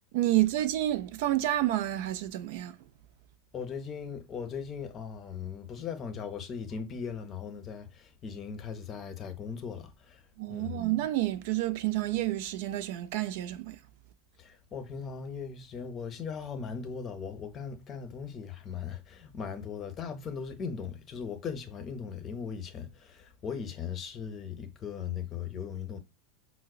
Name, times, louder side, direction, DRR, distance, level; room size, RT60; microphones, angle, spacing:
voice 1, 0.1-2.8 10.4-13.8, right 15 dB, 65° right, 0.3 m, -29 dB
voice 2, 3.5-10.8 14.4-26.0, left 6 dB, 35° left, 0.6 m, -38 dB
4.6 x 2.0 x 2.3 m
hypercardioid pair, 105°, 0 cm